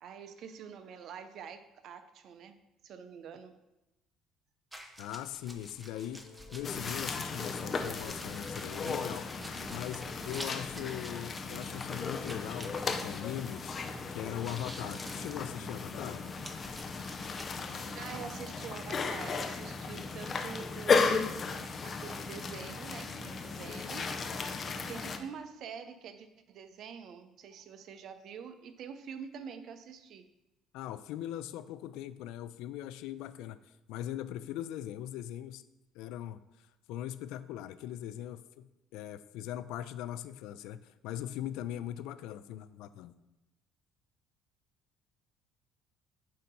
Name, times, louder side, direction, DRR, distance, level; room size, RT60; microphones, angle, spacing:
voice 1, 0.0-2.6 2.8-3.5 11.1-11.2 17.9-21.5 21.8-24.1 24.7-30.3, right 7 dB, 60° right, 10 dB, 0.6 m, -46 dB
sound 1, 4.7-14.0 14.2-17.6, equal, 5° right, 0.8 m, -49 dB
voice 2, 5.0-6.2 6.5-9.3 9.7-13.7 14.1-16.2 30.7-33.6 33.9-35.6 35.9-43.2, left 12 dB, 80° left, 13 dB, 0.3 m, -40 dB
sound 2, 5.9-18.1, left 4 dB, 65° left, 0.9 m, -55 dB
sound 3, 6.6-25.2, left 4 dB, 35° left, 0.6 m, -35 dB
7.6 x 2.8 x 5.4 m, 0.98 s
cardioid pair, 95°, 0 cm